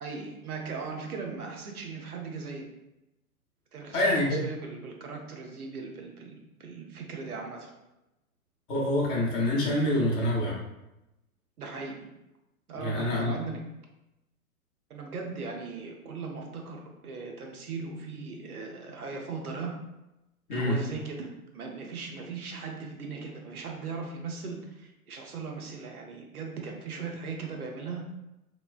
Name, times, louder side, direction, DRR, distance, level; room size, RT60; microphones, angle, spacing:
voice 1, 0.0-2.7 3.7-7.7 11.6-12.1 12.7-13.7 14.9-19.8 20.5-21.3 21.5-28.0, right 4 dB, 75° right, 1 dB, 0.8 m, -38 dB
voice 2, 3.9-4.4 8.7-10.5 12.7-13.4 20.5-20.8, left 1 dB, 35° left, -5 dB, 0.9 m, -26 dB
3.1 x 2.0 x 2.4 m, 0.93 s
figure-of-eight pair, 115°, 44 cm